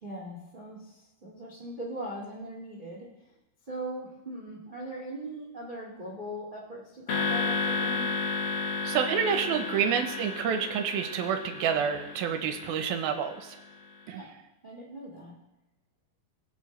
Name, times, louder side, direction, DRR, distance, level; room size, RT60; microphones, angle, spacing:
voice 1, 0.0-3.1 3.7-8.1 14.1-14.3 14.6-15.4, right 1 dB, 30° right, -2 dB, 0.8 m, -40 dB
sound 1, 7.1-13.5, left 4 dB, 50° left, 2.1 m, -32 dB
voice 2, 8.8-13.6 14.1-14.2, right 7 dB, 75° right, 6 dB, 2.7 m, -28 dB
22.0 x 8.0 x 3.3 m, 0.92 s
omnidirectional pair, 4.4 m